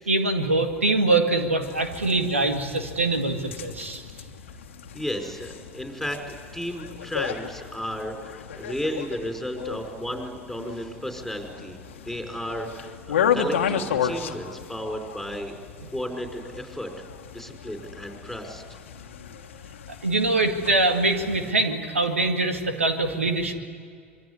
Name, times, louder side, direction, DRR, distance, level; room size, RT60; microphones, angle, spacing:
voice 1, 0.1-4.0 20.0-23.5, right 2 dB, 90° right, 6 dB, 2.0 m, -23 dB
sound 1, 1.6-21.5, left 7 dB, 75° left, 1.5 m, -34 dB
voice 2, 4.9-6.2 6.5-15.5 15.9-16.9 17.3-18.6, equal, ahead, 4 dB, 5.3 m, -33 dB
26.0 x 23.0 x 9.8 m, 2.1 s
figure-of-eight pair, 75°, 7 cm